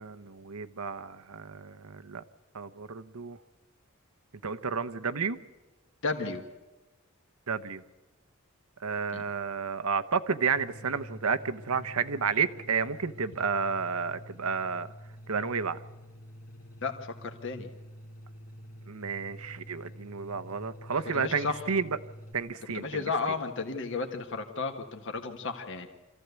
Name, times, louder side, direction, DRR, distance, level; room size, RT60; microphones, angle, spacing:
voice 1, 0.0-2.2 2.5-3.4 4.4-5.4 7.5-7.8 8.8-14.9 15.3-15.8 18.9-22.0 22.3-23.4, right 5 dB, 85° right, 11 dB, 0.9 m, -31 dB
voice 2, 6.0-6.4 9.1-9.2 16.8-16.9 17.2-17.7 21.1-21.6 22.7-25.9, left 4 dB, 60° left, 4 dB, 1.5 m, -33 dB
sound 1, 10.6-22.3, equal, 90° left, 2.1 m, -48 dB
25.5 x 15.0 x 8.2 m, 1.1 s
head